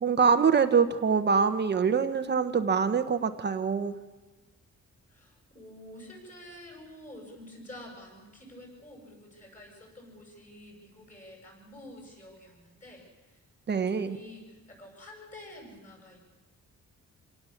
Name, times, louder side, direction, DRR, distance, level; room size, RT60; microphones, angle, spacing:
voice 1, 0.0-3.9 13.7-14.2, right 6 dB, 35° right, 9 dB, 1.0 m, -24 dB
voice 2, 5.1-13.4 13.7-16.2, left 1 dB, 25° left, 0 dB, 7.3 m, -49 dB
27.0 x 18.0 x 7.2 m, 1.2 s
wide cardioid pair, 170°, 29 cm